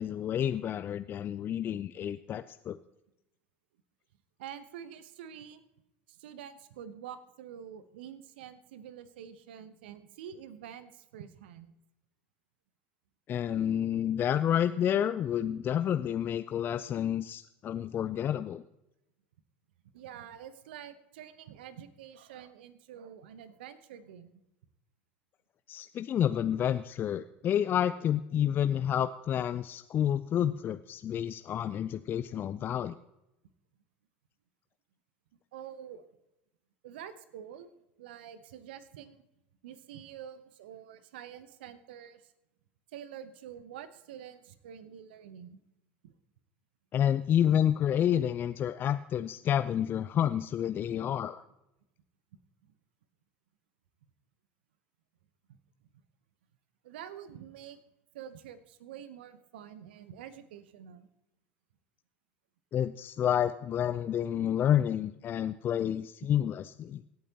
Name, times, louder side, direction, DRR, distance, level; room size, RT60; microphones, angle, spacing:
voice 1, 0.0-2.8 13.3-18.6 25.7-32.9 46.9-51.4 62.7-67.0, left 10 dB, 35° left, 11 dB, 0.5 m, -29 dB
voice 2, 4.4-5.6 6.1-11.7 15.4-15.5 19.9-24.4 35.5-36.1 36.8-37.7 38.0-39.2 39.6-42.3 42.9-45.6 46.0-46.1 56.8-57.8 58.1-61.1, right 9 dB, 70° right, 14 dB, 0.9 m, -47 dB
25.5 x 8.5 x 2.9 m, 0.88 s
figure-of-eight pair, 75°, 6 cm